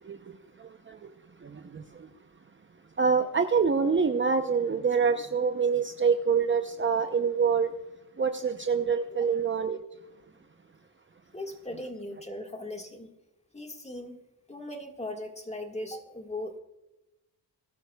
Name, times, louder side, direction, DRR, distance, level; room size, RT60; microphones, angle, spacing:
voice 1, 3.0-7.7 8.2-9.8, right 5 dB, 30° right, 0.7 m, -25 dB
voice 2, 11.3-13.1 13.5-14.2 14.5-16.6, left 1 dB, 15° left, 1.6 m, -38 dB
20.0 x 12.5 x 2.3 m
cardioid pair, 80°, 40 cm